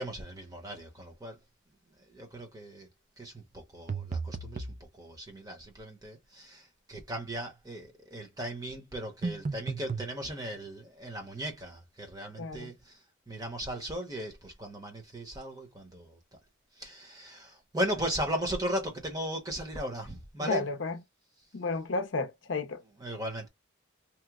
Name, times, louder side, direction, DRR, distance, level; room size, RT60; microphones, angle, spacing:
voice 1, 0.0-1.4 1.9-2.9 3.2-16.4 16.7-20.7 23.0-23.5, right 1 dB, 20° right, 0.8 m, -37 dB
sound 1, 3.9-4.8 9.2-10.1, right 4 dB, 35° right, 0.4 m, -34 dB
voice 2, 12.4-12.7 20.4-21.0 21.5-22.8, left 3 dB, 65° left, 0.5 m, -32 dB
2.9 x 2.0 x 3.5 m
head